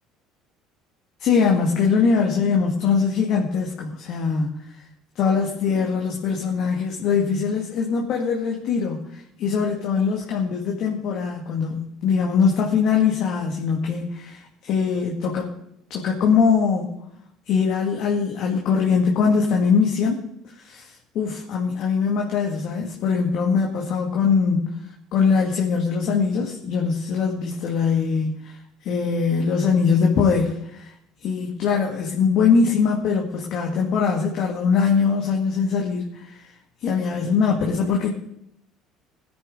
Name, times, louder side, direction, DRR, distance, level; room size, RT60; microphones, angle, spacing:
voice 1, 1.2-4.6 5.2-9.0 9.4-15.5 15.9-16.9 17.5-20.2 20.6-24.7 25.1-28.6 28.8-30.9 31.2-36.5 36.8-38.1, left 5 dB, 60° left, 0 dB, 2.0 m, -22 dB
19.5 x 10.0 x 3.8 m, 0.77 s
hypercardioid pair, 65°, 0 cm